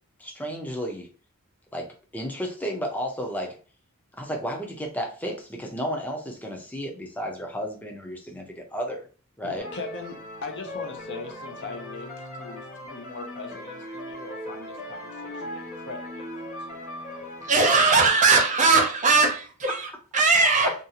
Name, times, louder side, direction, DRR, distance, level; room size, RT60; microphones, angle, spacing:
voice 1, 0.2-1.1 1.7-3.6 4.2-9.1 9.4-9.7, equal, 5° left, 1 dB, 0.5 m, -32 dB
voice 2, 9.4-16.8, left 4 dB, 55° left, 4 dB, 0.6 m, -40 dB
sound 1, 9.6-18.1, left 1 dB, 35° left, 1.2 m, -38 dB
voice 3, 17.4-20.7, right 4 dB, 35° right, 3 dB, 0.6 m, -20 dB
2.6 x 2.4 x 2.7 m, 0.37 s
head